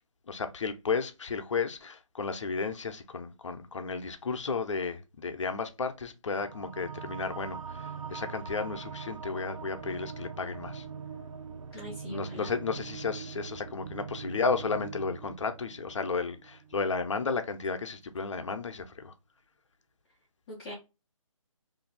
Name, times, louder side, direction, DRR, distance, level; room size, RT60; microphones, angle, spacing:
voice 1, 0.3-10.8 12.1-19.1, left 4 dB, 60° left, 0.6 m, -33 dB
sound 1, 6.3-17.2, right 6 dB, 80° right, 0.4 m, -42 dB
voice 2, 11.7-12.5 20.5-20.7, left 1 dB, 10° left, 0.5 m, -41 dB
2.6 x 2.5 x 3.9 m
figure-of-eight pair, 160°, 17 cm